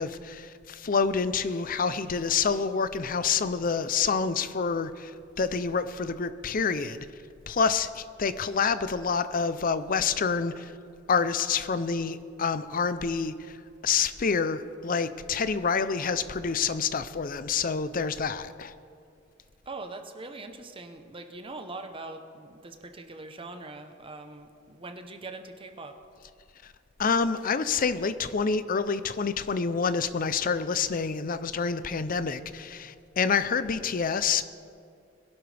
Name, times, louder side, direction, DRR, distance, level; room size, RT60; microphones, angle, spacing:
voice 1, 0.0-7.1 7.5-10.7 11.1-13.6 13.8-18.7 27.0-34.4, left 5 dB, 45° left, 12 dB, 0.6 m, -27 dB
voice 2, 19.7-25.9, right 2 dB, 25° right, 6 dB, 0.9 m, -42 dB
21.5 x 11.5 x 3.4 m, 2.4 s
head